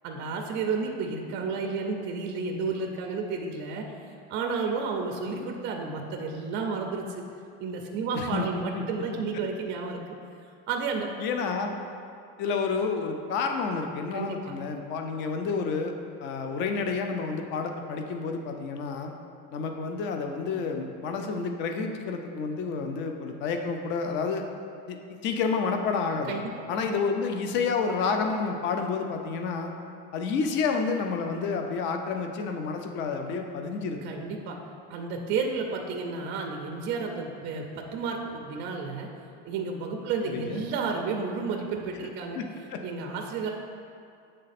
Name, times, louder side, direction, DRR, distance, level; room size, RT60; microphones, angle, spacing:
voice 1, 0.0-7.2 7.6-10.0 10.7-11.1 14.1-14.5 26.3-26.7 34.0-34.6 34.9-39.1 39.4-42.4 42.8-43.5, right 4 dB, 30° right, 2 dB, 0.4 m, -32 dB
voice 2, 8.1-8.5 8.7-8.8 11.2-11.7 12.4-15.9 16.2-19.1 19.5-24.4 24.9-25.0 25.2-26.4 26.7-29.7 30.1-34.0 40.3-40.6 42.4-42.8, left 5 dB, 35° left, 4 dB, 0.4 m, -29 dB
7.5 x 3.2 x 4.1 m, 2.4 s
cardioid pair, 155°, 35 cm